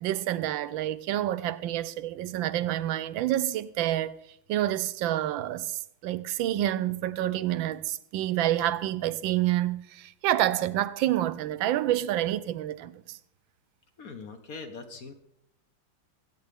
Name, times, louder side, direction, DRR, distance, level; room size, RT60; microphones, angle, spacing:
voice 1, 0.0-4.2 4.5-13.2, right 13 dB, 80° right, 1.3 m, -28 dB
voice 2, 14.0-15.1, left 4 dB, 50° left, 1.4 m, -41 dB
21.0 x 8.8 x 3.5 m
omnidirectional pair, 2.1 m